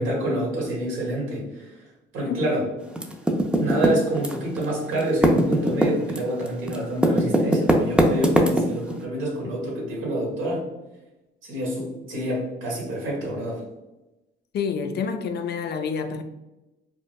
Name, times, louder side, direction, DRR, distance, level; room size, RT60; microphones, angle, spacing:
voice 1, 0.0-1.8 2.1-2.7 3.5-10.6 11.4-13.6, right 1 dB, 80° right, 1.4 m, -27 dB
voice 2, 2.3-2.7 14.5-16.2, left 6 dB, 55° left, 0.4 m, -28 dB
Typing, 3.0-4.7 4.9-8.9, right 1 dB, 5° right, 0.4 m, -20 dB
4.4 x 2.1 x 2.2 m
cardioid pair, 90°, 20 cm